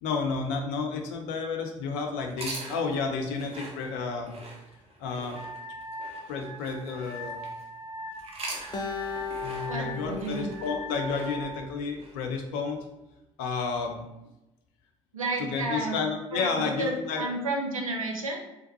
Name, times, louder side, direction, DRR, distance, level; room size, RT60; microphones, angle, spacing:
voice 1, 0.0-4.4 5.0-5.4 6.3-7.4 9.4-12.9 13.4-14.1 15.4-17.3, left 4 dB, 65° left, 3 dB, 0.7 m, -31 dB
sound 1, 2.3-7.6 8.1-12.2, right 2 dB, 35° right, 0.9 m, -43 dB
Wind instrument woodwind instrument, 5.3-11.7, equal, 15° right, 0.9 m, -41 dB
Acoustic guitar, 8.7-12.1, left 6 dB, 25° left, 0.6 m, -38 dB
voice 2, 9.7-10.6 15.1-16.0 16.3-18.4, right 2 dB, 85° right, 1 dB, 0.6 m, -31 dB
3.6 x 3.5 x 3.1 m, 0.94 s
figure-of-eight pair, 55°, 17 cm